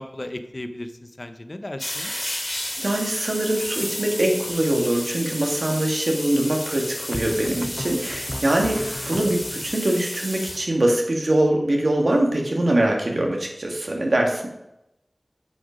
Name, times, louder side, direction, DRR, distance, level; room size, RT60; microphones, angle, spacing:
voice 1, 0.0-2.1, left 1 dB, 45° left, 8 dB, 0.9 m, -35 dB
sound 1, 1.8-10.6, left 1 dB, 25° left, 2.2 m, -32 dB
voice 2, 1.9-2.3 2.7-14.5, right 1 dB, 75° right, 1 dB, 1.9 m, -23 dB
sound 2, 4.5-5.0 7.1-9.8, equal, 10° left, 0.7 m, -36 dB
9.7 x 6.0 x 5.1 m, 0.87 s
wide cardioid pair, 50°, 0 cm